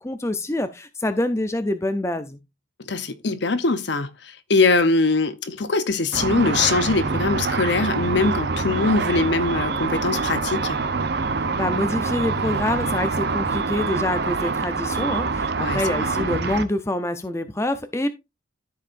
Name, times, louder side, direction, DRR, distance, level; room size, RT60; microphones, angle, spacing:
voice 1, 0.0-2.4 11.5-18.1, left 1 dB, 15° left, 0.6 m, -26 dB
voice 2, 2.9-10.8 15.6-16.1, left 3 dB, 65° left, 0.8 m, -22 dB
Car / Traffic noise roadway noise / Engine, 6.1-16.6, right 4 dB, 55° right, 0.7 m, -25 dB
13.5 x 4.8 x 2.6 m
head